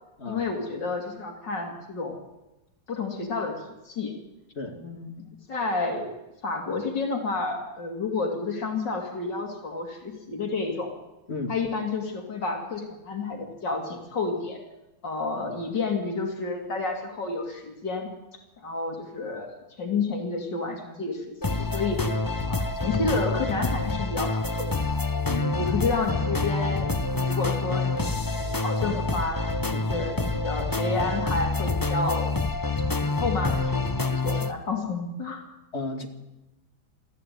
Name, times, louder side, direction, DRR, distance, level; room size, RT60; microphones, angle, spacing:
voice 1, 0.3-2.2 2.9-3.6 3.9-4.1 4.7-6.2 6.4-10.9 11.5-14.6 15.0-18.1 18.6-22.0 22.5-24.7 25.5-29.4 29.9-32.3 33.0-35.4, left 3 dB, 80° left, 2 dB, 3.6 m, -30 dB
sound 1, 21.4-34.5, left 3 dB, 20° left, 0.5 m, -27 dB
voice 2, 25.3-25.8 29.7-29.9 35.7-36.1, left 2 dB, 35° left, 4 dB, 2.5 m, -33 dB
21.0 x 14.5 x 9.5 m, 0.98 s
omnidirectional pair, 1.9 m